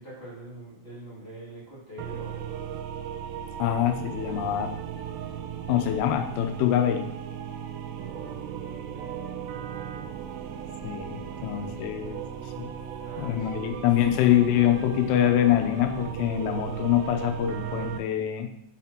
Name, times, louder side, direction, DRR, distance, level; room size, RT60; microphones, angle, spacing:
voice 1, 0.0-2.8 8.2-9.2 11.2-12.2 13.0-13.7 14.2-14.3, right 2 dB, 40° left, -8 dB, 0.7 m, -45 dB
sound 1, 2.0-18.0, right 9 dB, 85° right, 2.4 m, -36 dB
voice 2, 3.6-4.7 5.7-7.1 10.8-12.7 13.2-18.5, left 11 dB, 85° left, 6 dB, 3.3 m, -25 dB
7.6 x 4.3 x 5.9 m, 0.76 s
omnidirectional pair, 5.4 m